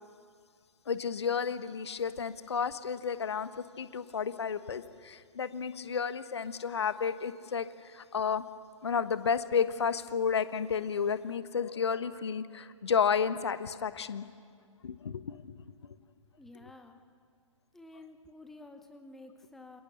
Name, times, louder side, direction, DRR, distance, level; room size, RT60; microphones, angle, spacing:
voice 1, 0.9-3.5 3.8-7.7 7.9-8.4 8.8-14.2 14.8-15.5, left 6 dB, 50° left, 12 dB, 1.3 m, -31 dB
voice 2, 16.4-17.0 17.7-19.8, left 2 dB, ahead, 8 dB, 0.8 m, -51 dB
28.0 x 28.0 x 6.9 m, 2.2 s
figure-of-eight pair, 130°, 17 cm